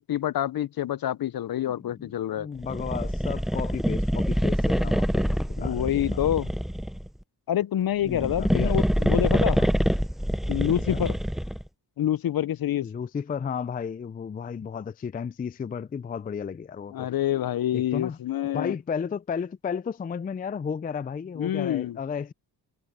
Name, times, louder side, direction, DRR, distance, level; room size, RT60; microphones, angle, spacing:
voice 1, 0.0-2.5 5.6-6.5 7.5-9.6 10.5-11.1 12.0-12.9 16.9-18.7 21.4-22.0, left 11 dB, 55° left, 0.6 m, -27 dB
voice 2, 1.8-6.3 8.0-8.8 9.6-9.7 10.9-11.0 12.8-17.1 17.7-18.2 18.5-22.3, left 6 dB, 20° left, 0.4 m, -33 dB
sound 1, 2.6-7.1 8.0-11.7, equal, ahead, 0.7 m, -25 dB
cardioid pair, 75°, 42 cm